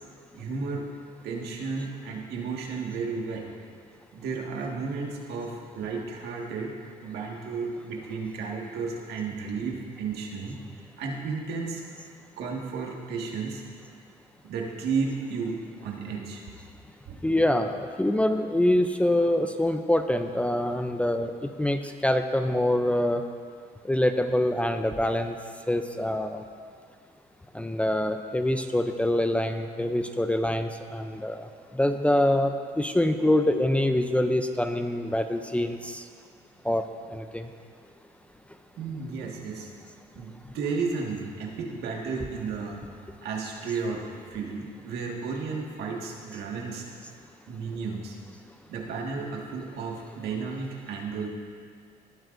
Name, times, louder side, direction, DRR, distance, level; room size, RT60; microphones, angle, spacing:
voice 1, 0.3-0.9 1.2-3.6 4.1-6.8 7.0-10.6 11.0-11.8 12.4-13.6 14.4-16.4 17.1-17.2 38.8-39.7 40.2-42.8 43.2-46.9 47.5-48.2 48.7-51.3, right 4 dB, 75° right, 0 dB, 1.8 m, -33 dB
voice 2, 17.2-21.3 21.6-23.2 23.8-25.4 25.7-26.4 27.5-31.5 31.8-36.0 36.7-36.8 37.1-37.4, left 1 dB, 5° left, 7 dB, 0.5 m, -25 dB
19.0 x 9.1 x 2.6 m, 2.2 s
cardioid pair, 110°, 17 cm